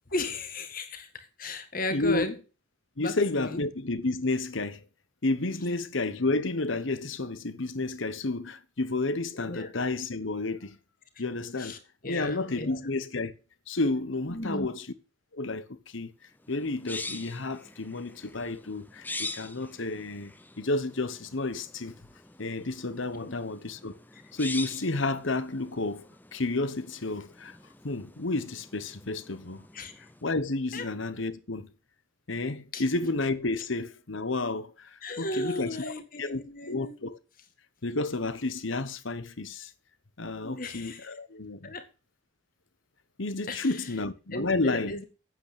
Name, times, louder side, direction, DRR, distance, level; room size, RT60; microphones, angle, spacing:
voice 1, 0.1-2.4 3.0-3.6 9.3-9.7 11.6-11.8 12.0-12.8 14.3-14.7 23.1-23.3 29.7-30.1 30.7-30.9 32.7-32.8 35.0-37.0 40.4-41.1 41.6-41.8 43.5-43.8 44.3-45.0, left 2 dB, 45° left, 1.8 m, -35 dB
voice 2, 1.9-2.3 3.0-4.8 5.2-10.8 11.2-11.8 12.1-13.3 13.7-14.9 15.3-16.1 16.5-20.3 20.6-21.9 22.4-23.9 24.3-27.6 27.8-29.6 30.2-31.7 32.3-36.4 36.7-37.2 37.8-39.7 40.2-41.7 43.2-44.9, left 2 dB, 75° left, 1.2 m, -31 dB
sound 1, 16.4-30.2, left 3 dB, 10° left, 0.8 m, -44 dB
9.2 x 8.2 x 8.7 m
head